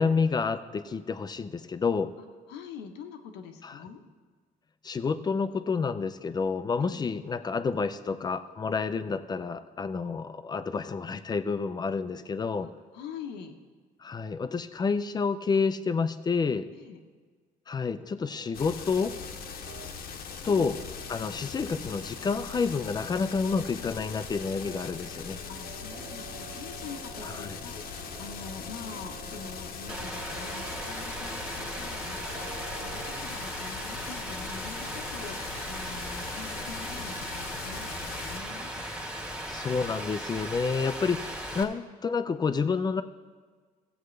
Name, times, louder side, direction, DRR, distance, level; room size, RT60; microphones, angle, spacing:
voice 1, 0.0-2.1 3.6-3.8 4.8-12.7 14.0-16.7 17.7-19.1 20.4-20.8 21.1-25.4 27.2-27.6 39.5-43.0, left 5 dB, 25° left, 11 dB, 0.5 m, -29 dB
voice 2, 2.2-4.0 6.7-7.1 12.6-13.5 16.7-17.0 20.4-20.7 25.5-38.7, left 6 dB, 90° left, 5 dB, 1.0 m, -44 dB
sound 1, 18.3-33.2, right 4 dB, 45° right, 0.9 m, -48 dB
sound 2, 18.5-38.4, left 6 dB, 65° left, 1.0 m, -41 dB
Rain, 29.9-41.6, right 1 dB, 5° right, 1.4 m, -37 dB
17.0 x 7.9 x 3.3 m, 1.5 s
cardioid pair, 110°, 17 cm